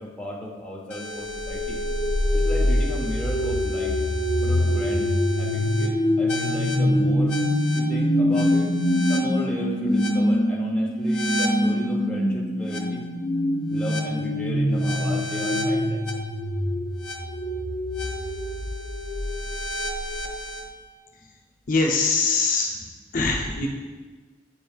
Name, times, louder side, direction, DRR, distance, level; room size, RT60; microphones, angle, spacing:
voice 1, 0.0-1.8 2.3-4.0 4.4-5.1 5.4-7.4 7.7-8.8 9.1-13.0 13.7-16.0 23.5-23.7, left 1 dB, 5° left, -3 dB, 0.8 m, -34 dB
sound 1, 0.9-20.7, left 1 dB, 85° left, 0.8 m, -24 dB
voice 2, 21.7-22.7 23.1-23.7, left 3 dB, 50° left, 0 dB, 0.7 m, -22 dB
8.6 x 5.3 x 2.4 m, 1.4 s
head